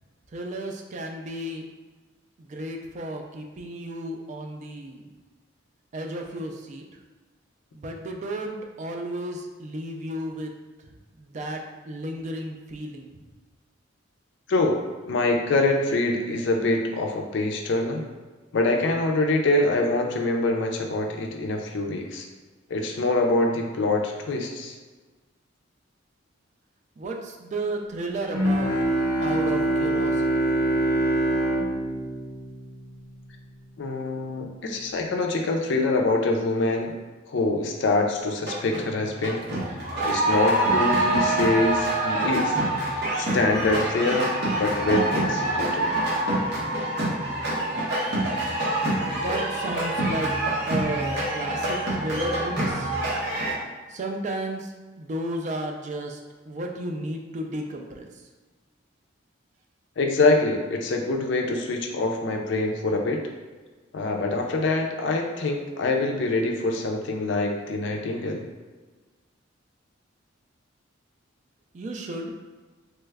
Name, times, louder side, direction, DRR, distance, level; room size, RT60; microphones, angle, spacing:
voice 1, 0.3-1.6 2.4-5.1 5.9-6.8 7.7-10.5 11.2-13.2 27.0-28.7 29.2-30.3 49.1-50.3 50.7-52.9 53.9-54.7 55.0-58.1 71.7-72.3, right 1 dB, 35° right, 2 dB, 0.3 m, -33 dB
voice 2, 14.5-18.0 18.5-22.3 22.7-24.8 33.8-36.9 37.3-39.5 40.0-42.6 43.2-46.0 60.0-63.2 63.9-68.5, left 2 dB, 65° left, 3 dB, 0.4 m, -25 dB
Bowed string instrument, 28.3-33.4, right 1 dB, 20° right, 1.0 m, -25 dB
sound 1, 38.3-38.9 39.2-53.5, right 1 dB, 55° right, 0.9 m, -26 dB
3.0 x 2.3 x 3.3 m, 1.3 s
head